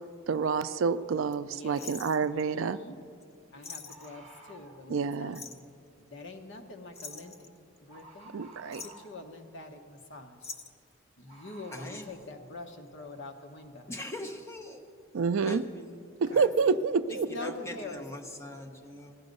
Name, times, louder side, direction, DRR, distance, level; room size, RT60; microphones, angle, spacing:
voice 1, 0.3-2.8 4.9-5.4 8.3-8.8 15.1-15.6 16.2-17.3, right 5 dB, 65° right, 13 dB, 0.4 m, -28 dB
voice 2, 1.5-1.9 2.3-3.0 3.5-5.7 6.0-7.5 7.8-8.3 8.6-10.5 11.2-13.9 17.1-18.0, left 2 dB, 55° left, 4 dB, 1.1 m, -45 dB
sound 1, 1.8-2.6 3.2-3.3 3.6-4.2 5.3-5.7 6.9-8.0 8.5-9.1 10.4-10.9 12.0-12.3 12.6-12.7, left 4 dB, 30° left, 0.6 m, -44 dB
Bird, 3.9-4.8 7.1-7.3 7.9-9.2 11.3-12.1, right 1 dB, 30° right, 1.1 m, -52 dB
voice 3, 11.7-12.2 13.9-14.9 15.4-19.2, left 1 dB, 10° left, 0 dB, 1.0 m, -43 dB
15.5 x 12.0 x 5.3 m, 2.3 s
head